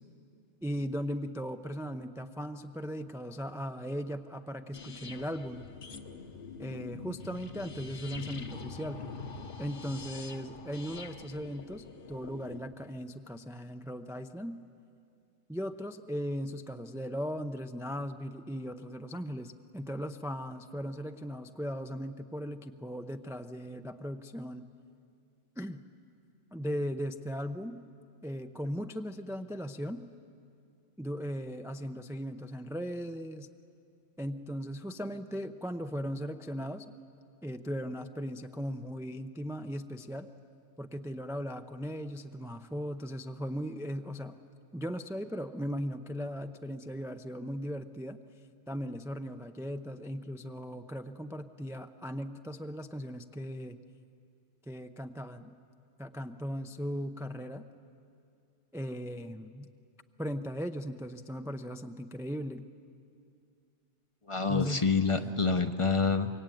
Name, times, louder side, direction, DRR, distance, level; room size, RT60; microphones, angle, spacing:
voice 1, 0.6-5.7 6.6-9.0 9.6-14.6 15.5-24.6 25.6-25.8 26.5-27.8 28.2-30.0 31.0-33.5 34.2-36.9 37.4-40.3 40.8-44.4 44.7-48.2 48.7-53.8 54.7-55.5 56.0-57.7 58.7-59.7 60.2-62.7 64.5-64.9 65.2-65.3, equal, 5° right, 7 dB, 0.4 m, -38 dB
sound 1, 4.7-12.6, left 4 dB, 50° left, 1.2 m, -44 dB
voice 2, 64.3-66.3, left 5 dB, 30° left, 9 dB, 0.8 m, -27 dB
25.0 x 23.0 x 9.2 m, 2.4 s
omnidirectional pair, 1.2 m